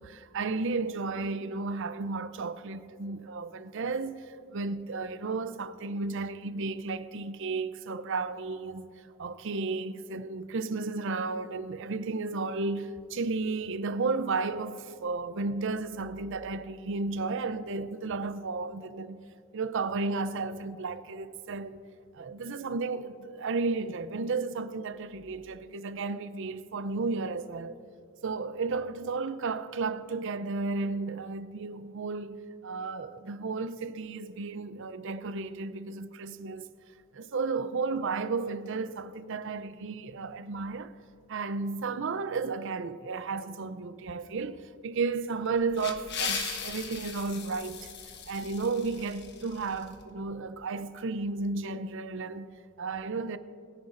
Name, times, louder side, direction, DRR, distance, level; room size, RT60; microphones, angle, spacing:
voice 1, 0.0-8.9 9.2-19.2 19.5-21.8 22.1-27.7 28.2-32.4 32.6-36.7 37.1-40.9 41.3-47.9 48.3-53.4, right 4 dB, 65° right, 0.6 m, -33 dB
sound 1, 45.4-50.0, left 6 dB, 55° left, 1.2 m, -38 dB
22.0 x 10.5 x 2.6 m
head